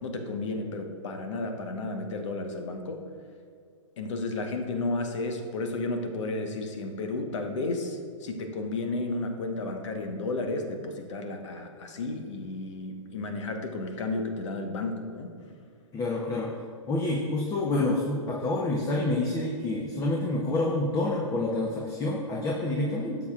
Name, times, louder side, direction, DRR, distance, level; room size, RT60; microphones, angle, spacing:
voice 1, 0.0-3.0 4.0-15.3, left 2 dB, 65° left, 4 dB, 1.2 m, -32 dB
voice 2, 15.9-16.5 16.9-23.2, left 2 dB, 20° left, -2 dB, 0.9 m, -28 dB
12.5 x 7.3 x 2.5 m, 2.3 s
hypercardioid pair, 135°, 17 cm